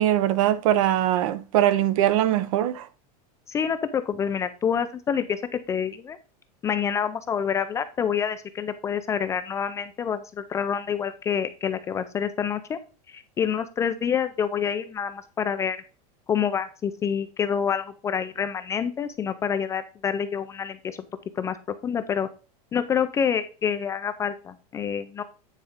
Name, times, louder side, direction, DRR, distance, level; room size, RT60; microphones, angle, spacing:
voice 1, 0.0-2.9, right 12 dB, 60° right, 0.8 m, -21 dB
voice 2, 3.5-6.2 6.6-12.8 13.1-15.8 16.3-21.0 21.4-22.3 22.7-25.2, left 7 dB, 15° left, 0.4 m, -27 dB
9.3 x 4.1 x 5.0 m
supercardioid pair, 165°, 19 cm